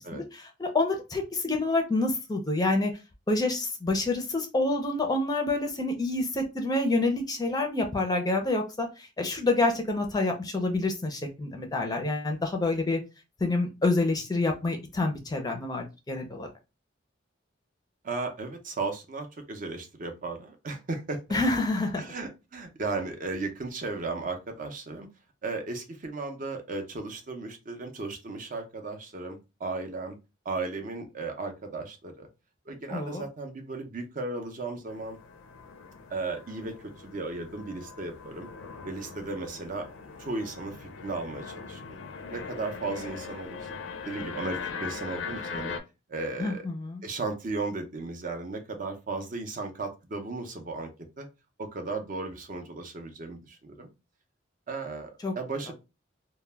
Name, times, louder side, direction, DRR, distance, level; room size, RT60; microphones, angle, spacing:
voice 1, 0.1-2.9 3.3-8.9 9.2-13.0 13.4-16.5 21.3-22.0 32.9-33.2 46.4-47.0 55.2-55.3, left 2 dB, 20° left, 4 dB, 0.4 m, -27 dB
voice 2, 18.0-21.4 21.9-25.1 25.4-30.2 30.4-32.3 32.7-35.2 36.1-38.5 38.9-39.9 40.2-42.0 42.3-43.7 44.0-45.8 46.1-46.7 47.0-50.9 51.2-51.3 51.6-53.9 54.7-55.7, right 3 dB, 40° right, 5 dB, 0.5 m, -35 dB
sound 1, 34.9-45.8, left 5 dB, 75° left, 0.4 m, -40 dB
2.1 x 2.1 x 3.1 m, 0.26 s
head